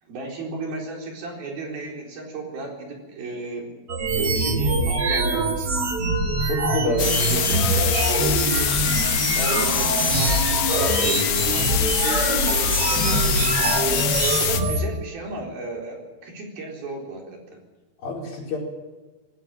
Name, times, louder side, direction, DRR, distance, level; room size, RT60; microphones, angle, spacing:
voice 1, 0.0-3.7 4.1-5.8 6.8-13.7 14.4-17.4, right 3 dB, 60° right, 1 dB, 5.8 m, -34 dB
sound 1, 3.9-14.8, right 2 dB, 35° right, 3.2 m, -23 dB
voice 2, 6.5-7.0 13.9-14.2 18.0-18.6, left 4 dB, 55° left, -1 dB, 6.1 m, -28 dB
sound 2, 7.0-14.6, left 10 dB, 75° left, 3.7 m, -24 dB
19.5 x 16.5 x 9.0 m, 1.2 s
omnidirectional pair, 5.0 m